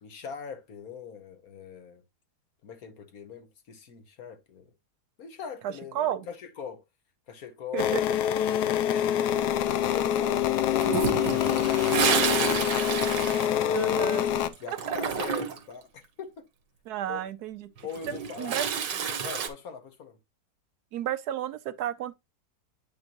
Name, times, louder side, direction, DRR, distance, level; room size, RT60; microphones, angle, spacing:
voice 1, 0.0-2.0 2.6-4.7 5.2-6.8 7.3-8.2 8.8-12.9 13.5-14.1 14.6-16.4 17.1-17.2 17.8-18.6 19.2-20.2, left 6 dB, 60° left, 1.5 m, -41 dB
voice 2, 5.6-6.3 7.7-8.0 13.7-14.3 14.9-15.1 16.9-17.7 18.4-18.7 20.9-22.1, right 11 dB, 70° right, 1.1 m, -32 dB
sound 1, 7.8-14.5, left 11 dB, 75° left, 1.2 m, -25 dB
Toilet flush, 10.8-14.3 14.5-15.7 17.8-19.5, right 6 dB, 85° right, 1.7 m, -29 dB
8.8 x 5.2 x 2.9 m
omnidirectional pair, 1.8 m